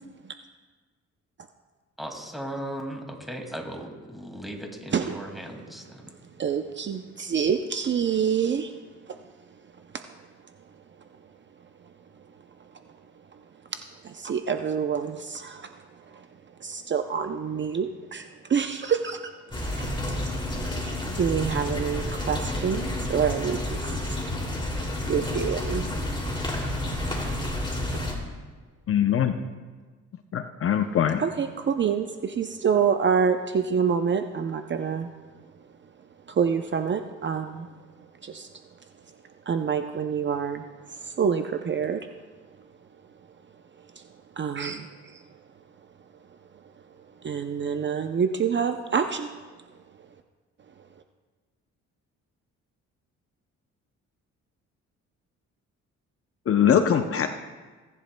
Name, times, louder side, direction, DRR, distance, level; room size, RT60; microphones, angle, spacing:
voice 1, 2.0-6.1, right 1 dB, ahead, 2 dB, 2.1 m, -37 dB
voice 2, 6.4-8.7 9.9-10.0 13.7-15.8 16.1-16.2 16.6-19.2 19.8-19.9 20.8-24.2 25.1-25.9 31.2-35.1 36.3-37.7 38.2-38.5 39.5-40.6 41.0-42.1 44.0-44.1 44.4-45.2 47.2-49.3, right 7 dB, 40° right, 7 dB, 0.6 m, -27 dB
sound 1, 19.5-28.1, left 1 dB, 15° left, 2.6 m, -30 dB
voice 3, 28.9-29.3 30.3-31.2 56.5-57.3, left 9 dB, 45° left, 7 dB, 0.6 m, -22 dB
17.5 x 10.5 x 2.2 m, 1.4 s
cardioid pair, 90°, 30 cm